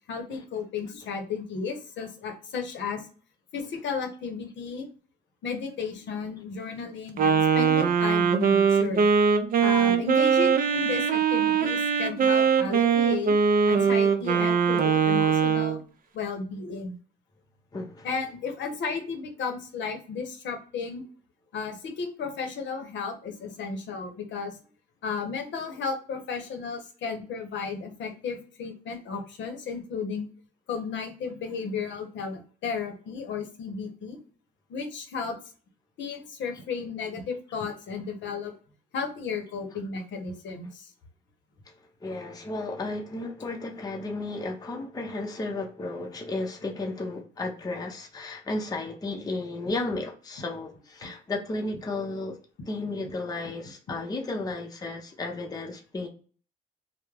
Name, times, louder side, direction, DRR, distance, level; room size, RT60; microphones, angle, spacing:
voice 1, 0.0-3.1 3.5-4.9 5.4-9.0 9.6-13.3 13.7-15.8 16.1-17.0 18.0-21.0 21.5-24.6 25.0-30.3 30.7-34.2 34.7-35.4 36.0-38.5 38.9-40.9, left 5 dB, 65° left, 5 dB, 0.7 m, -34 dB
Wind instrument woodwind instrument, 7.2-15.8, right 6 dB, 45° right, 0.4 m, -22 dB
voice 2, 17.7-18.1 42.0-52.4 52.7-56.1, left 2 dB, 20° left, 2 dB, 0.5 m, -33 dB
2.2 x 2.0 x 3.1 m, 0.40 s
cardioid pair, 90°, 20 cm